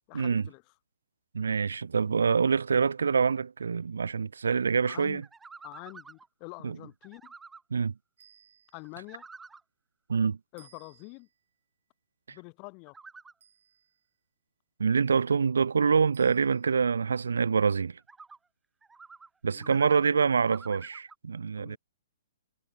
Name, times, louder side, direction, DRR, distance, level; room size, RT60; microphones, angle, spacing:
voice 1, 0.1-0.6 4.8-5.2 5.6-7.3 8.7-9.2 10.5-11.3 12.3-13.0 19.5-20.2 21.6-21.8, left 37 dB, 35° left, 2.1 m, -46 dB
voice 2, 1.3-5.2 6.6-6.8 7.7-7.9 10.1-10.4 14.8-18.0 19.4-21.8, right 5 dB, 85° right, 0.5 m, -26 dB
sound 1, 5.2-6.3 7.0-7.6 8.8-9.6 12.9-13.3 18.0-18.4 18.8-19.3 19.6-21.1, right 4 dB, 10° right, 0.7 m, -49 dB
sound 2, 8.2-9.1 10.6-11.4 13.4-14.1 16.1-16.8, right 9 dB, 65° right, 4.2 m, -61 dB
hypercardioid pair, 140°, 0 cm